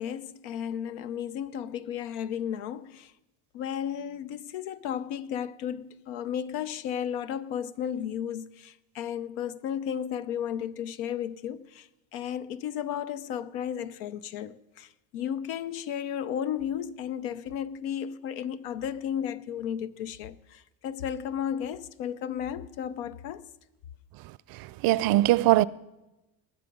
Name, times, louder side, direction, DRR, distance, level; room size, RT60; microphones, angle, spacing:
voice 1, 0.0-3.1 3.5-23.4, left 9 dB, 90° left, 0.7 m, -34 dB
voice 2, 24.5-25.6, right 16 dB, 60° right, 0.5 m, -22 dB
20.5 x 7.6 x 5.3 m
supercardioid pair, 95°, 41 cm